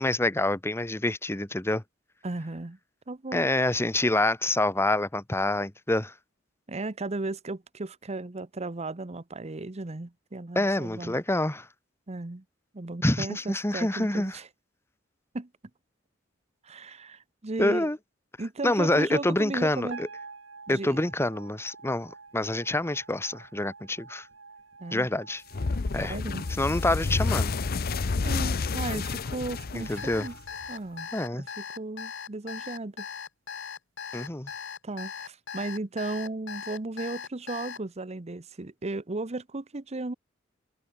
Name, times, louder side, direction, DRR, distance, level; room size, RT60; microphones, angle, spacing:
voice 1, 0.0-1.8 3.3-6.1 10.5-11.7 13.0-14.4 17.6-18.0 18.6-20.1 20.7-24.3 24.9-25.4 25.9-26.1 26.6-27.5 29.7-30.3 31.1-31.5 34.1-34.5, left 1 dB, 15° left, 1.1 m, -27 dB
voice 2, 2.2-2.8 3.1-3.5 6.7-11.2 12.1-12.4 12.7-14.5 15.3-15.5 16.6-17.9 18.4-20.0 20.7-21.0 24.8-25.1 26.0-26.4 28.2-30.3 30.7-33.0 34.8-40.1, right 2 dB, 35° right, 0.9 m, -35 dB
sound 1, 19.9-32.2, right 4 dB, 70° right, 2.9 m, -49 dB
sound 2, 25.5-30.7, left 4 dB, 50° left, 0.6 m, -29 dB
Alarm, 30.0-37.8, left 7 dB, 65° left, 1.7 m, -39 dB
head